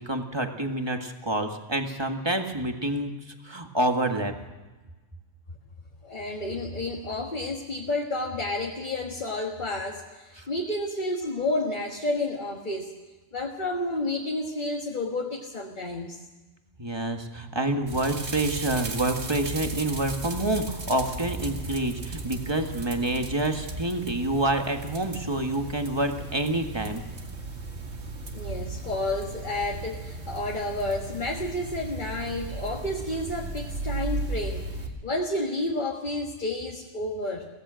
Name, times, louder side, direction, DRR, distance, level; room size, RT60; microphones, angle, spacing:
voice 1, 0.0-3.1 3.4-4.3 16.8-27.0, right 1 dB, 20° right, 4 dB, 1.8 m, -27 dB
voice 2, 6.0-13.0 13.3-16.2 28.3-34.7 35.0-37.5, left 2 dB, 40° left, 0 dB, 1.8 m, -30 dB
sound 1, 17.9-34.9, right 3 dB, 60° right, 2.3 m, -36 dB
24.0 x 17.5 x 6.4 m, 1.2 s
omnidirectional pair, 1.3 m